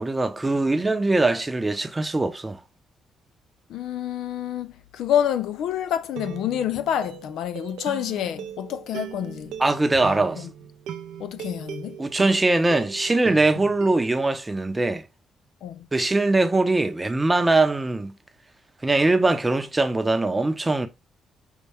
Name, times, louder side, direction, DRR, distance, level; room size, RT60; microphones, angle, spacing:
voice 1, 0.0-2.6 9.6-10.5 12.0-15.1 15.9-18.1 18.8-20.9, right 2 dB, 20° right, 0.7 m, -22 dB
voice 2, 3.7-9.5 10.4-10.5 11.2-12.0 15.6-15.9, left 10 dB, 80° left, 0.3 m, -28 dB
sound 1, 5.3-5.5 6.2-14.2, right 9 dB, 85° right, 0.5 m, -39 dB
5.4 x 2.2 x 3.4 m
cardioid pair, 90°, 0 cm